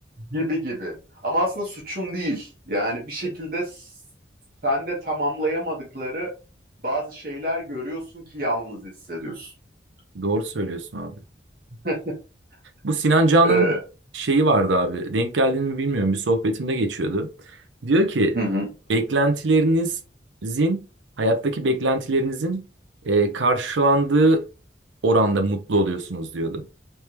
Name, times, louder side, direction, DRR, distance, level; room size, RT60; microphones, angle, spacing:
voice 1, 0.3-0.9 1.2-3.9 4.6-6.3 6.8-9.5 11.8-12.1 13.4-13.8 18.3-18.7, right 1 dB, 50° right, 1.3 m, -27 dB
voice 2, 10.1-11.1 12.8-13.7 14.1-17.3 17.8-18.4 18.9-19.9 20.4-20.8 21.2-22.6 23.0-24.4 25.0-26.6, right 2 dB, 85° right, 0.6 m, -21 dB
3.3 x 3.3 x 2.9 m
head